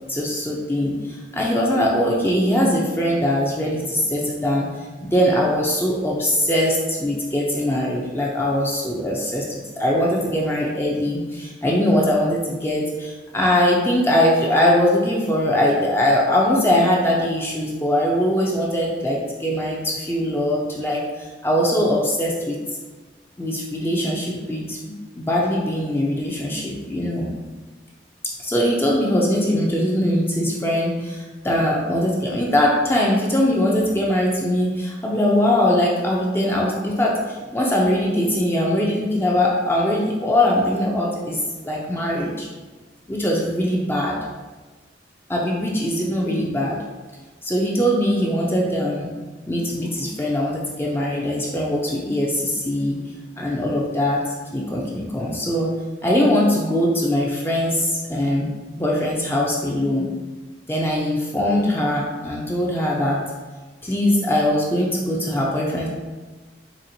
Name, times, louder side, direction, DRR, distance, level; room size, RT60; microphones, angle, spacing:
voice 1, 0.1-22.6 23.4-27.3 28.4-42.5 43.1-44.2 45.3-46.8 47.4-49.1 49.5-53.0 53.4-55.7 56.0-58.5 58.8-60.1 60.7-63.2 63.8-65.9, left 1 dB, 10° left, -3 dB, 0.4 m, -21 dB
4.2 x 3.4 x 2.6 m, 1.3 s
head